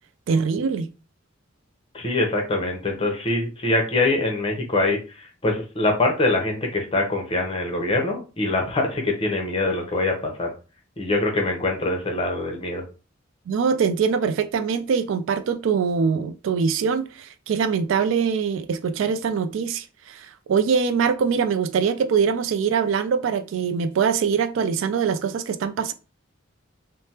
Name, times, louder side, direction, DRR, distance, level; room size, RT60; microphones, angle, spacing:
voice 1, 0.3-0.9 13.5-25.9, right 6 dB, 70° right, 0.3 m, -23 dB
voice 2, 1.9-10.5 11.0-12.8, left 2 dB, 25° left, 0.7 m, -24 dB
3.2 x 2.1 x 2.8 m
head